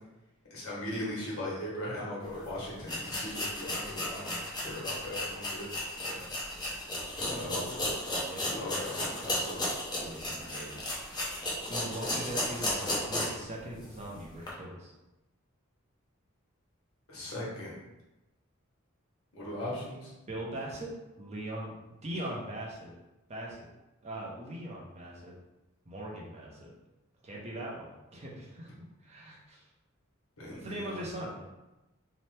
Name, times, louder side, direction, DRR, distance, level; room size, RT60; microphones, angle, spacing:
voice 1, 0.5-5.7 7.1-7.6 8.4-9.6 17.1-17.7 19.3-20.1 30.4-31.0, left 1 dB, 80° left, -6 dB, 1.1 m, -39 dB
sound 1, 2.3-2.4 2.8-13.5 13.8-13.9 14.4-14.5, left 1 dB, 20° left, 0.6 m, -34 dB
voice 2, 7.3-7.6 8.3-8.5 10.0-10.8 11.7-14.9 20.3-20.9 21.2-21.7 22.0-22.9 23.3-23.7 24.0-25.3 25.9-26.7 27.2-28.7 29.0-29.6 30.5-31.4, right 1 dB, 30° right, -3 dB, 0.5 m, -40 dB
2.8 x 2.1 x 3.2 m, 1.0 s
head